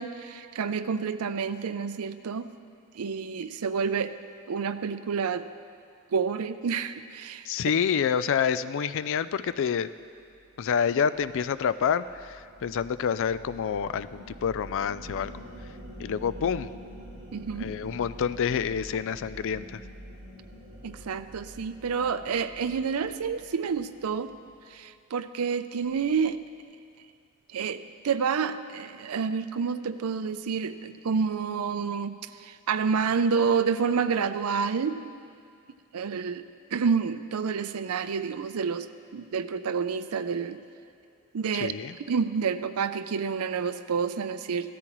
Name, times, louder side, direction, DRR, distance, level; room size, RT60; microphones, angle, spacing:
voice 1, 0.0-2.5 2.9-4.1 4.5-5.5 6.1-7.5 17.3-17.7 20.8-24.3 24.7-26.4 27.5-35.0 35.9-36.4 36.7-40.6 41.3-41.7 42.0-44.7, right 6 dB, 85° right, 12 dB, 0.5 m, -29 dB
voice 2, 7.4-9.9 10.6-15.4 16.0-16.7 17.6-19.8 41.6-41.9, left 7 dB, 60° left, 14 dB, 0.4 m, -28 dB
sound 1, 10.2-24.7, equal, 45° right, 2.7 m, -46 dB
16.5 x 13.5 x 3.0 m, 2.3 s
head